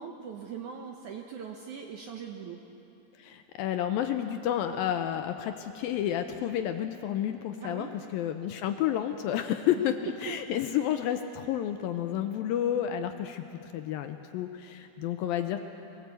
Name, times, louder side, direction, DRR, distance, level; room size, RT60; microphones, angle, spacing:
voice 1, 0.0-2.6 7.6-7.9 10.5-10.6, right 6 dB, 70° right, 2 dB, 1.9 m, -41 dB
voice 2, 3.2-7.9 8.1-13.4 13.7-15.6, left 10 dB, 80° left, 7 dB, 2.2 m, -30 dB
23.0 x 17.5 x 8.2 m, 2.9 s
omnidirectional pair, 4.7 m